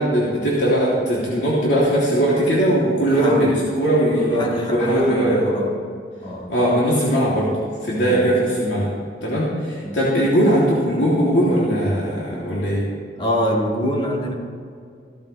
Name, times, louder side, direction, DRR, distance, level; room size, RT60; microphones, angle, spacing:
voice 1, 0.0-4.4 4.7-5.4 6.5-7.5 7.8-8.9 9.2-12.8, right 1 dB, 85° left, -7 dB, 3.4 m, -19 dB
voice 2, 3.1-3.5 4.2-5.8 6.2-6.5 8.0-8.3 9.8-10.0 13.2-14.3, equal, 30° left, -1 dB, 2.2 m, -24 dB
16.0 x 13.0 x 3.5 m, 2.3 s
head